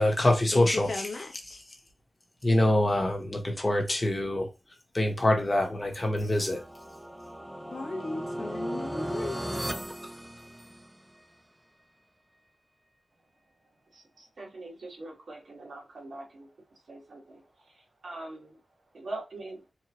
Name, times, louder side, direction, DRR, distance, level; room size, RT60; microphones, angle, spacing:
voice 1, 0.0-0.9 2.4-4.5 4.9-6.6, left 1 dB, 25° left, 1.1 m, -25 dB
voice 2, 0.5-1.6 7.7-9.6, left 3 dB, 70° left, 1.0 m, -36 dB
sound 1, 5.9-11.1, equal, 5° right, 0.3 m, -37 dB
voice 3, 13.9-18.6 18.9-19.6, right 2 dB, 70° right, 1.9 m, -43 dB
4.5 x 2.4 x 3.0 m
wide cardioid pair, 140°, 0 cm